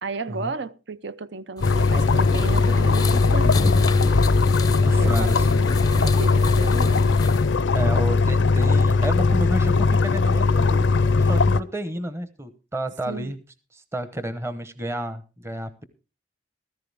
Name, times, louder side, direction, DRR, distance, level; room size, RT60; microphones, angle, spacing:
voice 1, 0.0-3.6 4.9-5.5 6.0-7.1 13.1-13.3, right 3 dB, 65° right, 0.7 m, -33 dB
sound 1, 1.6-11.6, left 4 dB, 75° left, 0.6 m, -19 dB
sound 2, 1.6-7.5, left 2 dB, 20° left, 0.5 m, -28 dB
voice 2, 4.8-5.7 7.7-13.4 13.7-15.8, right 1 dB, 15° right, 0.9 m, -31 dB
15.0 x 13.5 x 3.4 m
head